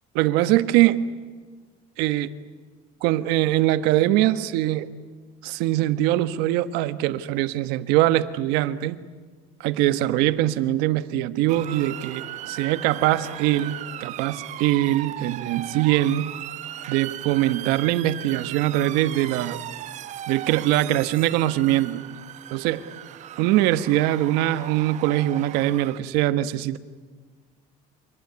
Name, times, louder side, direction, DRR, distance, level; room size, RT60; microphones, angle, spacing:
voice 1, 0.1-1.0 2.0-2.3 3.0-4.9 5.4-9.0 9.6-16.4 16.9-19.6 20.3-22.0 22.5-22.8 23.4-26.8, right 14 dB, 80° right, 13 dB, 1.2 m, -22 dB
Motor vehicle (road) / Siren, 11.5-26.0, right 12 dB, 45° right, 1.0 m, -37 dB
25.5 x 20.0 x 9.6 m, 1.5 s
cardioid pair, 150°, 16 cm